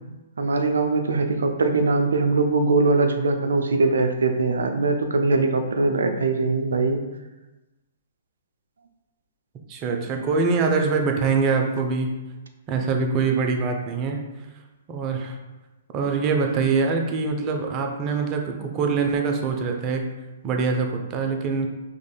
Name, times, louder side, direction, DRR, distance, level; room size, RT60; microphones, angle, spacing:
voice 1, 0.4-7.0, right 3 dB, 75° right, 6 dB, 0.4 m, -21 dB
voice 2, 9.7-12.1 12.7-14.2 14.9-15.3 15.9-20.1 20.4-21.7, right 4 dB, 30° right, 3 dB, 0.6 m, -24 dB
5.0 x 3.1 x 2.2 m, 1.1 s
figure-of-eight pair, 120°, 0 cm